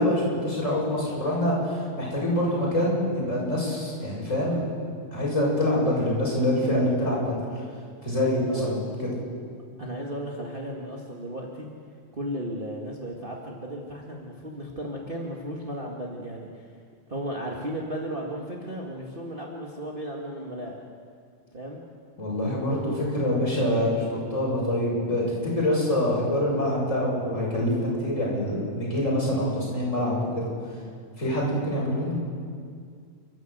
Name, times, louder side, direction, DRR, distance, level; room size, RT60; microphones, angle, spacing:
voice 1, 0.0-4.6 5.1-7.4 8.0-8.8 22.2-24.0 24.3-27.7 28.0-30.5 31.2-32.1, left 1 dB, 20° left, -4 dB, 6.7 m, -25 dB
voice 2, 9.8-11.7 12.1-16.7 17.1-20.8 21.5-21.8, equal, 30° right, -2 dB, 1.0 m, -35 dB
29.5 x 13.5 x 8.0 m, 2.1 s
omnidirectional pair, 4.2 m